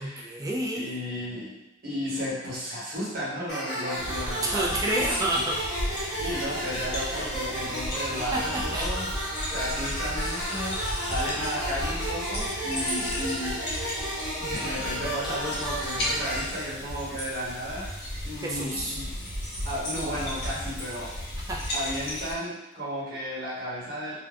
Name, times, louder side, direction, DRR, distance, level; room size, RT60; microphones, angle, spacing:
voice 1, 0.0-0.9 4.4-6.3 8.3-8.9 18.4-19.0 21.5-21.6, right 1 dB, 20° right, -2 dB, 0.3 m, -30 dB
voice 2, 0.7-1.6 1.8-5.2 6.2-9.1 9.5-13.9 14.4-19.1 19.5-21.2 21.7-24.1, equal, 50° right, -7 dB, 0.9 m, -34 dB
sound 1, 3.5-16.4, equal, ahead, 0.8 m, -33 dB
sound 2, 4.0-22.3, left 1 dB, 55° left, 0.8 m, -34 dB
2.4 x 2.1 x 3.3 m, 0.98 s
head